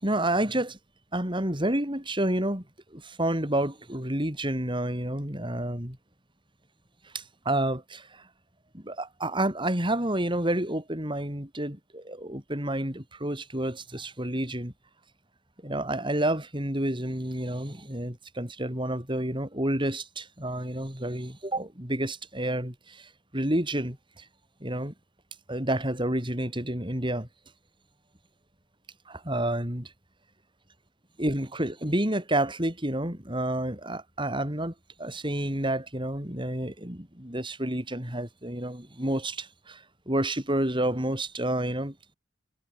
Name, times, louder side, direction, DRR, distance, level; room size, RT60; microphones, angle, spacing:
voice 1, 0.0-0.8 1.1-2.6 2.9-6.0 7.0-8.3 8.7-14.7 15.6-24.3 24.6-24.9 25.5-27.3 29.1-29.9 31.2-34.7 35.0-42.0, right 1 dB, 25° right, 7.1 m, -29 dB
head